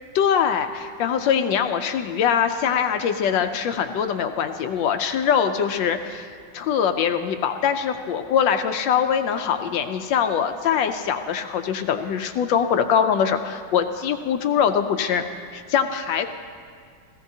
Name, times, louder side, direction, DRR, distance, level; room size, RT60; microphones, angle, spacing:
voice 1, 0.1-6.3 6.5-15.2 15.5-16.3, left 8 dB, 80° left, 7 dB, 1.3 m, -23 dB
17.0 x 15.5 x 2.7 m, 2.2 s
omnidirectional pair, 2.0 m